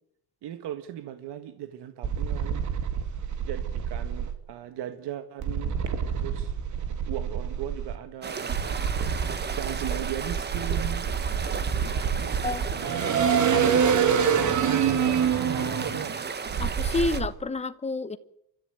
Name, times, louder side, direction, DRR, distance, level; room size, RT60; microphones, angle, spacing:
voice 1, 0.4-2.6 3.5-5.8 6.2-6.5 7.1-8.8 9.5-11.1 12.2-12.4 12.8-16.2, right 11 dB, 85° right, 8 dB, 1.8 m, -38 dB
sound 1, 2.0-4.3 5.4-8.0 8.5-17.3, right 7 dB, 45° right, 2.6 m, -27 dB
sound 2, 8.2-17.2, right 5 dB, 25° right, 1.4 m, -35 dB
voice 2, 16.6-18.2, left 3 dB, 15° left, 12 dB, 1.0 m, -29 dB
29.5 x 13.5 x 9.2 m, 0.73 s
cardioid pair, 180°, 40 cm